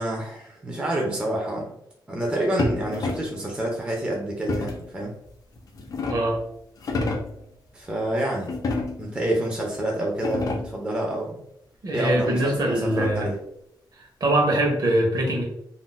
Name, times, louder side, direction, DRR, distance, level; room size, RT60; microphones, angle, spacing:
voice 1, 0.0-1.7 2.1-5.2 7.7-8.5 9.0-11.4 11.9-13.4, right 1 dB, 10° right, -1 dB, 0.4 m, -28 dB
sound 1, 2.6-3.4 4.5-4.9 5.6-6.4 6.8-7.4 8.5-9.2 9.8-9.9 10.1-10.8 12.2-13.4, left 2 dB, 45° left, 0.4 m, -30 dB
voice 2, 11.8-13.3 14.2-15.4, right 1 dB, 50° right, 0 dB, 0.8 m, -22 dB
2.4 x 2.1 x 3.7 m, 0.75 s
wide cardioid pair, 175°, 8 cm